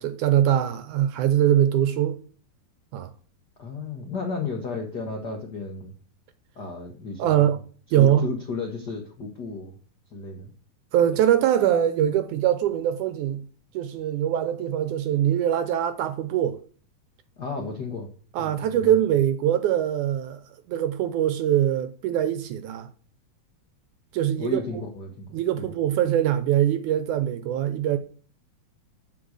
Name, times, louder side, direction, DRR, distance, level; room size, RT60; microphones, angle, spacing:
voice 1, 0.0-2.2 2.9-3.1 7.2-7.6 7.9-8.3 10.9-13.4 13.7-16.6 18.3-20.4 20.7-22.9 24.1-24.8 25.3-28.0, right 11 dB, 75° right, 2.0 m, -22 dB
voice 2, 3.6-5.9 6.5-7.5 8.0-9.8 10.1-10.5 17.4-18.1 18.4-19.0 24.4-25.7, left 4 dB, 80° left, 0.9 m, -33 dB
7.8 x 6.7 x 6.4 m
omnidirectional pair, 4.0 m